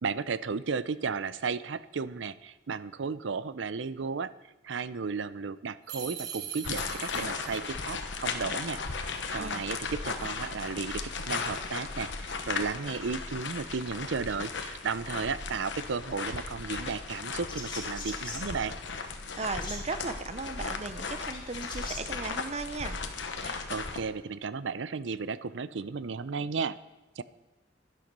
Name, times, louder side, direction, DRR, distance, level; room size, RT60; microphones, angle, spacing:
voice 1, 0.0-4.3 4.6-18.7 23.4-26.8 27.2-27.3, right 5 dB, 75° right, 16 dB, 0.5 m, -34 dB
sound 1, 5.9-7.6, right 8 dB, 55° right, 1.4 m, -40 dB
sound 2, 6.6-24.0, left 4 dB, 70° left, 1.1 m, -36 dB
voice 2, 9.4-9.7 19.4-23.0, right 3 dB, 35° right, 11 dB, 0.7 m, -36 dB
sound 3, 17.3-23.2, left 3 dB, 25° left, 2.1 m, -44 dB
11.5 x 11.5 x 5.3 m, 1.1 s
head